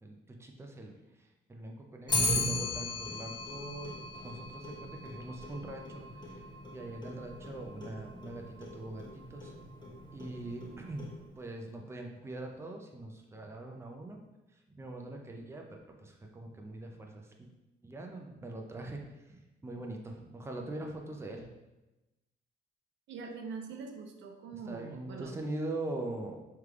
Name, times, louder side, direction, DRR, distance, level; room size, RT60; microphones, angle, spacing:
voice 1, 0.0-0.9 1.2-6.4 6.7-9.5 10.1-11.1 11.4-14.2 14.8-17.5 17.8-21.5 24.5-26.4, right 2 dB, 15° right, 1 dB, 0.6 m, -42 dB
Clock, 2.1-11.5, left 1 dB, 20° left, 1.0 m, -37 dB
voice 2, 23.1-25.4, right 5 dB, 70° right, 4 dB, 0.5 m, -43 dB
3.3 x 3.3 x 3.6 m, 1.0 s
cardioid pair, 90°, 20 cm